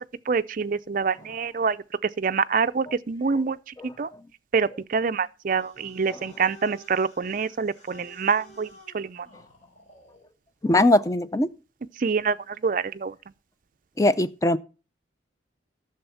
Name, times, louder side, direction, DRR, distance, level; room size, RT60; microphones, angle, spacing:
voice 1, 0.0-4.1 4.5-9.3 12.0-13.2, right 5 dB, 45° right, 0.4 m, -26 dB
sound 1, 5.6-10.3, equal, 40° left, 3.7 m, -51 dB
voice 2, 10.6-11.5 14.0-14.6, left 1 dB, 15° left, 0.4 m, -20 dB
11.5 x 7.0 x 5.6 m
head